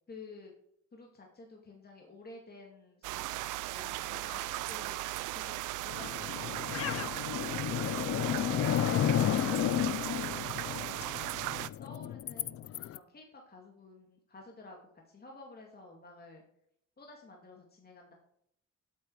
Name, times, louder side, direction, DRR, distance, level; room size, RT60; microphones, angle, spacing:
voice 1, 0.1-0.5 0.9-4.4 4.7-7.2 7.8-9.3 9.7-11.2 11.8-12.6 12.9-14.8 15.1-16.4 17.0-18.1, left 3 dB, 30° left, 0 dB, 2.5 m, -52 dB
sound 1, 3.0-11.7, right 17 dB, 85° right, 0.5 m, -37 dB
sound 2, 5.9-13.0, left 11 dB, 50° left, 0.5 m, -32 dB
12.0 x 8.6 x 4.8 m, 0.73 s
cardioid pair, 90°, 30 cm